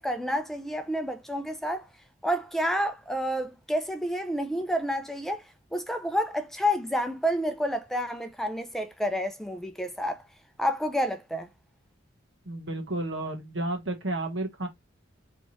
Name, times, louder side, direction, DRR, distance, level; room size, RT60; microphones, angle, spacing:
voice 1, 0.0-1.8 2.2-5.4 5.7-10.2 10.6-11.5, equal, ahead, 0.4 m, -29 dB
voice 2, 12.5-14.7, right 1 dB, 70° right, 1.4 m, -32 dB
3.4 x 3.2 x 4.1 m
head